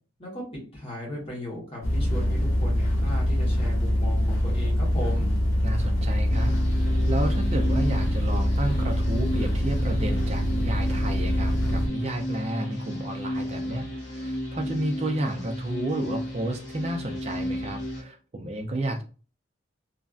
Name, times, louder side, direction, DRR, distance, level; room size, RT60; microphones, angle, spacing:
voice 1, 0.2-5.3, left 1 dB, 30° left, -3 dB, 1.2 m, -36 dB
sound 1, 1.8-11.9, equal, 85° left, 0.8 m, -24 dB
voice 2, 5.6-6.8 7.1-19.0, right 1 dB, 30° right, 5 dB, 0.4 m, -31 dB
sound 2, 6.3-18.0, equal, 60° left, 0.8 m, -33 dB
3.1 x 2.5 x 2.4 m, 0.37 s
head